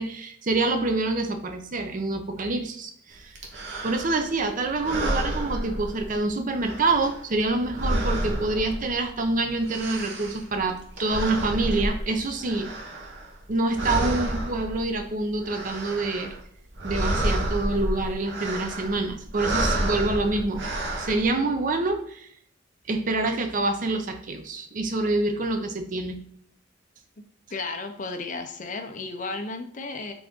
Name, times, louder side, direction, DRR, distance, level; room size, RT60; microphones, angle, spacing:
voice 1, 0.0-3.4 3.8-12.7 13.5-16.3 16.8-22.3 22.9-26.2, right 2 dB, 45° right, 6 dB, 0.6 m, -26 dB
sound 1, 3.3-4.3 4.7-6.3 6.5-9.2 9.5-13.5 13.7-15.0 15.3-16.4 16.7-21.2, right 1 dB, 65° right, 1.0 m, -30 dB
voice 2, 27.5-30.1, left 3 dB, 40° left, 4 dB, 0.6 m, -33 dB
3.9 x 3.5 x 3.6 m, 0.67 s
head